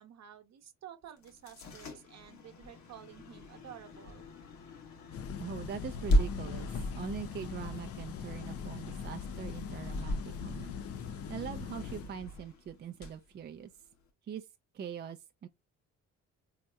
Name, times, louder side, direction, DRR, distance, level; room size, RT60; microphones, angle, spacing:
voice 1, 0.0-4.3, right 10 dB, 60° right, 0.8 m, -51 dB
sound 1, 1.2-14.1, equal, 65° left, 1.1 m, -38 dB
sound 2, 5.1-12.1, left 7 dB, 50° left, 0.4 m, -41 dB
voice 2, 5.4-10.7 11.3-13.7 14.2-14.5 14.7-15.5, right 8 dB, 35° right, 0.4 m, -42 dB
4.1 x 2.8 x 2.3 m
cardioid pair, 90°, 30 cm